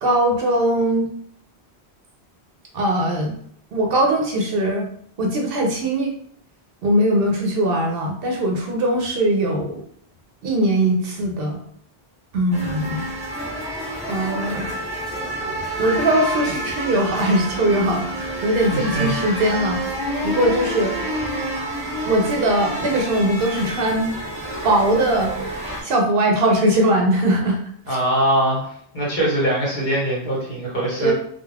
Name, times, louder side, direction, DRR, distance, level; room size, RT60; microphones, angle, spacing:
voice 1, 0.0-1.1 2.7-3.3 3.7-4.9 5.2-6.1 6.8-9.8 10.4-11.6 12.3-13.1 14.1-14.7 15.4-19.8 20.2-20.9 22.0-24.1 24.6-25.3 25.8-27.6 27.9-28.0 31.0-31.1, right 1 dB, 65° right, 1 dB, 0.7 m, -20 dB
sound 1, 12.5-25.8, right 1 dB, 5° right, 0.7 m, -28 dB
voice 2, 18.7-19.1 27.9-31.1, right 1 dB, 50° left, -5 dB, 1.0 m, -22 dB
2.3 x 2.2 x 3.2 m, 0.63 s
omnidirectional pair, 1.1 m